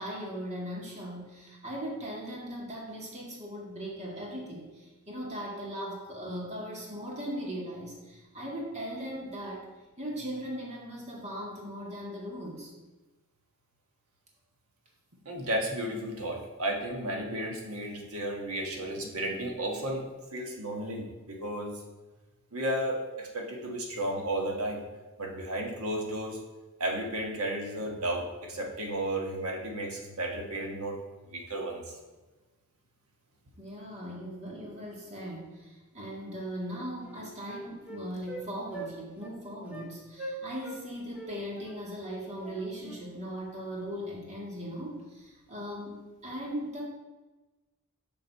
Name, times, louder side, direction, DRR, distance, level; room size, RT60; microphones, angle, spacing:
voice 1, 0.0-9.7 10.0-12.7 33.6-46.0 46.2-46.8, equal, 30° right, -3 dB, 1.9 m, -39 dB
voice 2, 15.2-21.7 22.5-24.8 25.2-26.4 26.8-31.0 31.3-31.8, right 1 dB, 70° right, 2 dB, 1.3 m, -33 dB
Wind instrument woodwind instrument, 36.2-36.4 36.7-38.4 38.7-38.9 39.2-39.3 39.7-39.9 40.2-40.8 41.1-43.0, right 1 dB, 5° right, 1.1 m, -42 dB
6.9 x 6.0 x 4.6 m, 1.2 s
head